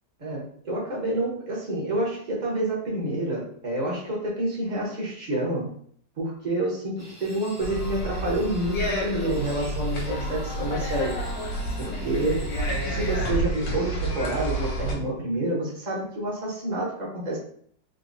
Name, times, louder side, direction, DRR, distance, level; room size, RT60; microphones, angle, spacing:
voice 1, 0.2-5.7 6.2-11.2 11.8-12.5 12.9-17.4, right 1 dB, 30° right, -4 dB, 1.0 m, -28 dB
sound 1, 7.0-13.3, equal, 15° left, 0.6 m, -47 dB
sound 2, 7.6-14.9, right 1 dB, 90° left, 1.4 m, -29 dB
3.7 x 2.7 x 2.6 m, 0.62 s
omnidirectional pair, 1.8 m